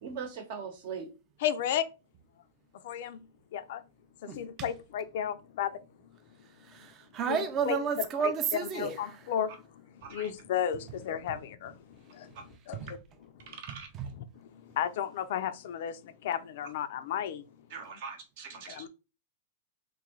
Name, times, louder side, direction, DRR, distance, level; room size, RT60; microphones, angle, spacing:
voice 1, 0.0-1.1 10.0-10.3 12.3-12.4 13.5-13.9 17.7-18.9, right 6 dB, 55° right, 0.9 m, -41 dB
voice 2, 1.4-1.8 2.8-3.3 3.5-3.8 4.2-5.8 7.3-7.4 7.6-7.8 8.2-8.3 8.8-9.5 10.1-11.8 12.1-12.3 12.7-12.8 14.5-17.4 18.8-18.9, left 9 dB, 55° left, 0.4 m, -33 dB
voice 3, 4.3-4.7 6.6-9.2 12.7-12.9 14.0-14.1, right 6 dB, 25° right, 0.5 m, -32 dB
3.1 x 2.6 x 3.8 m
supercardioid pair, 155°, 0 cm